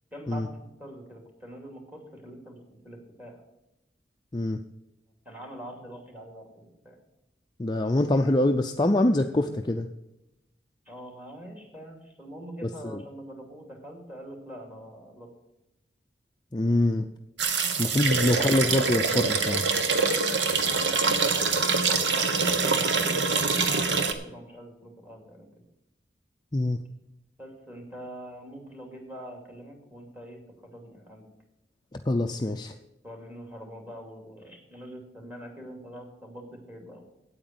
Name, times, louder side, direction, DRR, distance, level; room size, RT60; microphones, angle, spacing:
voice 1, 0.1-3.4 5.2-7.0 10.9-15.3 17.8-18.3 20.6-25.5 27.4-31.2 33.0-37.1, equal, 10° right, 2 dB, 2.5 m, -44 dB
voice 2, 7.6-9.9 12.6-13.0 16.5-17.1 17.8-19.6 26.5-26.8 32.1-32.7, left 1 dB, 25° left, 4 dB, 0.5 m, -24 dB
sound 1, 17.4-24.1, right 4 dB, 80° right, 1.2 m, -25 dB
9.0 x 8.8 x 7.4 m, 0.92 s
head